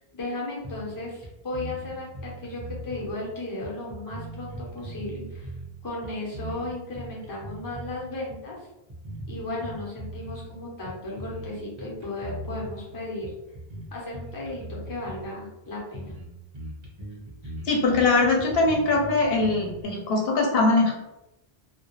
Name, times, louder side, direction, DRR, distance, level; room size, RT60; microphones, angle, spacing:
voice 1, 0.1-5.5 5.8-8.7 9.3-13.3 13.9-16.1, left 2 dB, 25° left, -4 dB, 0.6 m, -35 dB
sound 1, 0.6-1.0 1.2-1.3 1.5-3.2 3.6-5.7 6.0-8.0 8.3-8.5 8.9-10.5 10.9-11.5 11.8-12.8 13.2-15.3 15.6-15.7 15.9-16.3 16.5-19.8, right 1 dB, 30° right, 0.8 m, -39 dB
voice 2, 17.6-20.9, left 3 dB, 70° left, -1 dB, 0.8 m, -22 dB
2.3 x 2.1 x 2.9 m, 0.93 s
omnidirectional pair, 1.0 m